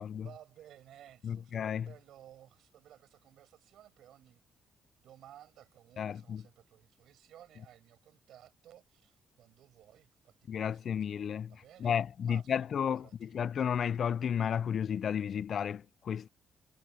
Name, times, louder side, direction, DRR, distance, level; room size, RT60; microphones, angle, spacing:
voice 1, 0.0-4.4 5.0-13.4, right 11 dB, 75° right, 7.3 m, -57 dB
voice 2, 1.2-1.9 6.0-6.4 10.5-16.3, left 8 dB, 55° left, 0.4 m, -33 dB
cardioid pair, 90°, 0 cm